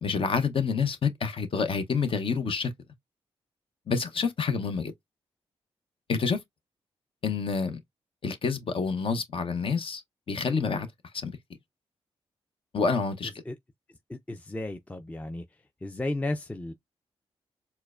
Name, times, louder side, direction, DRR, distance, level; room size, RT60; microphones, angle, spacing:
voice 1, 0.0-2.7 3.9-4.9 6.1-6.4 7.2-7.8 8.2-10.0 10.3-10.9 11.2-11.3 12.7-13.3, left 5 dB, 55° left, 0.7 m, -28 dB
voice 2, 14.1-15.4 15.8-16.7, left 2 dB, 15° left, 0.4 m, -33 dB
4.5 x 2.1 x 2.4 m
cardioid pair, 60°, 11 cm